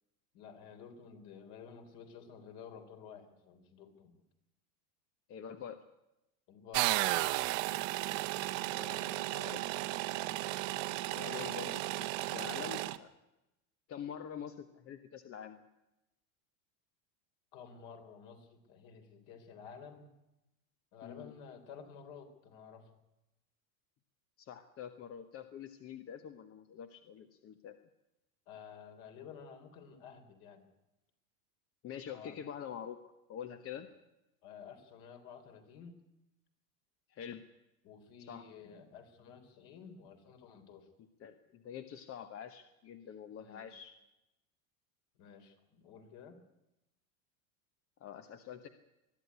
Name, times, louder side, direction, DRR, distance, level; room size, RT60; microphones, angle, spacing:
voice 1, 0.3-4.2 6.5-7.5 8.9-9.8 17.5-20.1 20.9-22.9 28.5-30.7 32.1-32.4 34.4-36.0 37.8-40.9 43.3-43.8 45.2-46.4, left 6 dB, 55° left, 6 dB, 3.8 m, -52 dB
voice 2, 5.3-5.8 8.7-9.0 9.4-9.6 11.1-13.1 13.9-15.7 21.0-21.3 24.4-27.8 31.8-33.9 37.1-37.4 38.2-38.5 41.0-44.0 48.0-48.7, left 8 dB, 30° left, 9 dB, 1.1 m, -46 dB
sound 1, 6.7-13.0, right 18 dB, 60° right, 1.2 m, -34 dB
21.5 x 12.5 x 9.7 m, 0.93 s
supercardioid pair, 135°, 44 cm